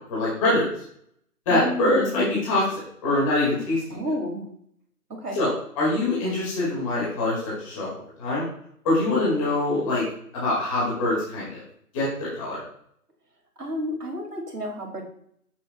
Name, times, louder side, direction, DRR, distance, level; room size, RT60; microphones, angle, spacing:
voice 1, 0.1-0.7 1.5-4.0 5.3-7.9 8.2-8.4 8.8-10.0 10.3-11.6 11.9-12.6, left 2 dB, 20° left, -6 dB, 2.1 m, -24 dB
voice 2, 1.5-2.3 3.9-4.5 5.1-5.4 13.6-15.0, equal, 75° right, 0 dB, 2.7 m, -31 dB
8.3 x 7.0 x 2.3 m, 0.67 s
figure-of-eight pair, 155°, 46 cm